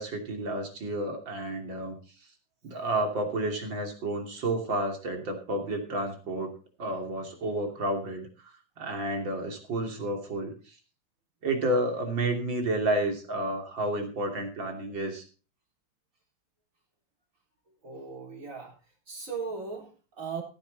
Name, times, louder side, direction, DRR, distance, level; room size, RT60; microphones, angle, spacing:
voice 1, 0.0-2.0 2.6-10.7 11.4-15.3, right 1 dB, 80° right, 4 dB, 3.6 m, -31 dB
voice 2, 17.7-18.8 19.1-20.4, right 5 dB, 45° right, 1 dB, 4.0 m, -38 dB
15.5 x 9.6 x 4.1 m, 0.35 s
omnidirectional pair, 2.0 m